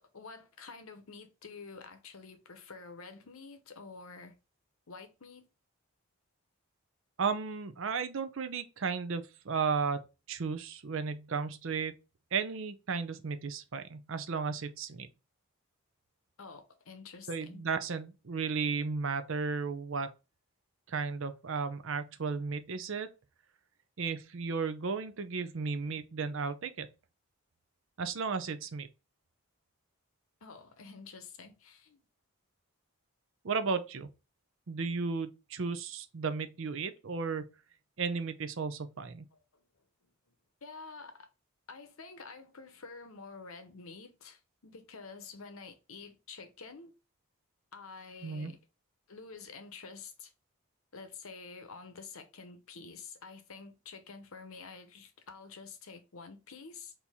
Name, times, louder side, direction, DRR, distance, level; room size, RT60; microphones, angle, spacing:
voice 1, 0.0-4.4 4.9-5.5 16.4-17.6 30.4-32.0 39.3-39.6 40.0-40.3 40.6-41.3 41.7-46.9 47.7-48.6 49.1-50.3 50.9-56.9, left 4 dB, 70° left, 0.9 m, -49 dB
voice 2, 7.2-10.0 10.3-11.9 12.3-15.1 17.3-20.1 20.9-23.1 24.0-26.9 28.0-28.9 33.4-34.1 34.7-37.4 38.0-39.3 48.2-48.5, right 5 dB, 60° right, 0.5 m, -34 dB
4.4 x 2.8 x 3.5 m
head